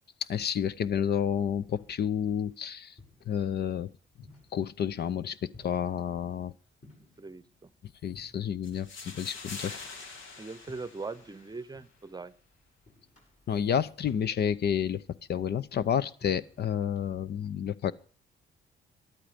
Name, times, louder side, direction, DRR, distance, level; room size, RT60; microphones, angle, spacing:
voice 1, 0.3-2.9 3.3-3.9 4.5-6.5 8.0-9.8 13.5-15.0 15.3-17.9, left 8 dB, 55° left, 16 dB, 0.7 m, -30 dB
sound 1, 1.7-17.1, left 2 dB, 40° left, 6.3 m, -59 dB
voice 2, 7.2-7.7 10.4-12.3, right 4 dB, 20° right, 17 dB, 0.8 m, -41 dB
sound 2, 8.6-11.7, left 4 dB, 75° left, 2.4 m, -44 dB
13.0 x 11.5 x 5.1 m, 0.42 s
cardioid pair, 90°, 20 cm